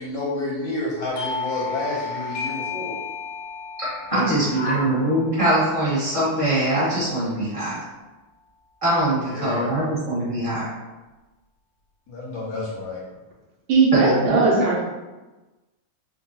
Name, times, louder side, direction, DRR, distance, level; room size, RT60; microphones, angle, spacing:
voice 1, 0.0-2.9 4.1-4.8 9.3-9.8 12.1-13.0, left 2 dB, 70° left, -4 dB, 1.0 m, -30 dB
Doorbell, 1.2-6.4, left 5 dB, 85° left, 1.4 m, -33 dB
voice 2, 3.8-7.7 8.8-10.7 13.9-14.4, right 1 dB, 20° right, -10 dB, 0.9 m, -22 dB
voice 3, 13.7-14.8, right 4 dB, 80° right, -3 dB, 1.5 m, -18 dB
3.6 x 2.2 x 2.7 m, 1.1 s
omnidirectional pair, 2.2 m